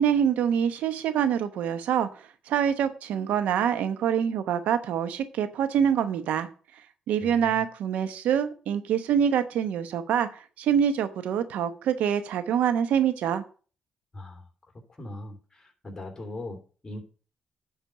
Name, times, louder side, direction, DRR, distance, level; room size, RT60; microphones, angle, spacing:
voice 1, 0.0-2.1 2.5-6.5 7.1-13.4, right 8 dB, 80° right, 0.9 m, -25 dB
voice 2, 7.2-7.6 14.1-14.4 14.7-17.0, left 2 dB, 25° left, 3.1 m, -40 dB
10.5 x 4.4 x 5.6 m
cardioid pair, 70°, 2 cm